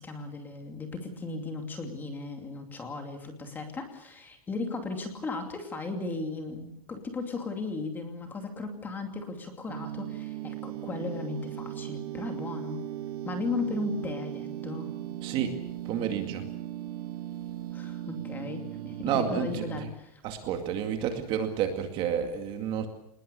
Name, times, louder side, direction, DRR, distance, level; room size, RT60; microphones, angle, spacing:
voice 1, 0.0-12.8 13.2-14.9 17.7-20.2, left 3 dB, 10° left, 5 dB, 2.6 m, -36 dB
sound 1, 9.7-19.8, right 12 dB, 75° right, 1.7 m, -38 dB
voice 2, 15.2-15.6 15.9-16.4 19.0-19.9 20.2-22.9, right 8 dB, 25° right, 6 dB, 2.2 m, -30 dB
26.0 x 20.5 x 7.0 m, 0.77 s
supercardioid pair, 180°, 19 cm